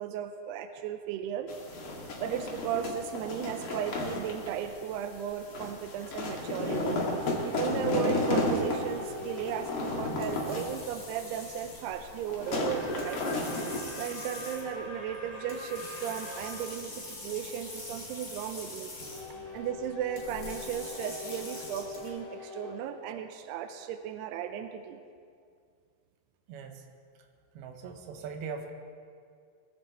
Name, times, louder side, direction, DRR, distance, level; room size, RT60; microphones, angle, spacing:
voice 1, 0.0-1.5 2.2-7.0 7.5-13.4 14.0-18.9 19.5-25.0, right 9 dB, 85° right, 8 dB, 2.3 m, -36 dB
sound 1, 1.5-13.8, left 2 dB, 50° left, 1.6 m, -33 dB
sound 2, 7.0-10.8 12.5-16.7 19.0-23.8, left 3 dB, 85° left, 6.4 m, -43 dB
sound 3, 7.3-22.1, left 1 dB, 25° left, 3.2 m, -45 dB
voice 2, 26.5-26.8 27.5-28.7, right 6 dB, 70° right, 4 dB, 2.7 m, -41 dB
20.0 x 15.0 x 4.2 m, 2.2 s
omnidirectional pair, 5.4 m